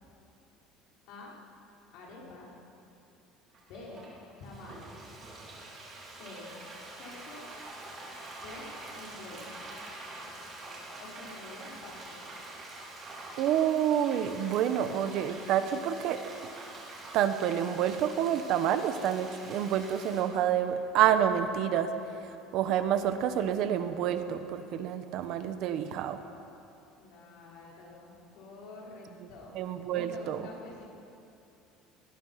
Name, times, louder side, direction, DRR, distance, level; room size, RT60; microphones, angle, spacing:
voice 1, 1.9-2.5 3.6-4.1 4.4-4.8 6.0-6.6 6.9-7.5 8.4-8.7 9.0-9.7 11.0-12.2 27.0-29.6 29.9-30.9, left 2 dB, 55° left, -3 dB, 5.4 m, -47 dB
Frying (food), 3.5-20.2, right 2 dB, 25° right, 4.4 m, -46 dB
voice 2, 13.4-16.2 17.1-21.9 22.5-26.2 29.5-30.4, right 9 dB, 45° right, 9 dB, 1.0 m, -28 dB
24.5 x 20.0 x 5.8 m, 2.7 s
cardioid pair, 180°, 0 cm